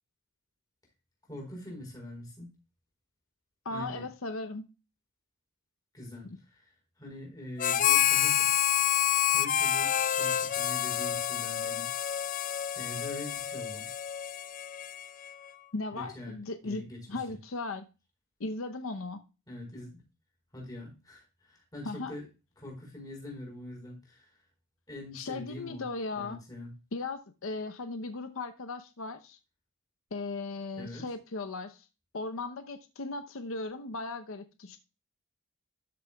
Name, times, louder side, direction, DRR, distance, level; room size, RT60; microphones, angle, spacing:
voice 1, 1.3-2.5 3.7-4.1 5.9-6.7 7.0-8.5 9.3-11.9 12.7-14.0 15.9-16.4 16.6-17.2 19.5-20.0 20.5-22.3 22.6-24.3 24.9-25.8 26.2-26.7 30.8-31.0, left 1 dB, 20° left, 4.4 m, -43 dB
voice 2, 3.6-4.7 6.2-6.4 15.7-17.9 18.4-19.2 21.8-22.1 25.1-26.4 26.9-29.4 30.1-31.9 32.1-34.8, left 3 dB, 85° left, 0.8 m, -37 dB
Harmonica, 7.6-15.3, left 10 dB, 40° left, 0.4 m, -28 dB
13.0 x 6.9 x 2.3 m
head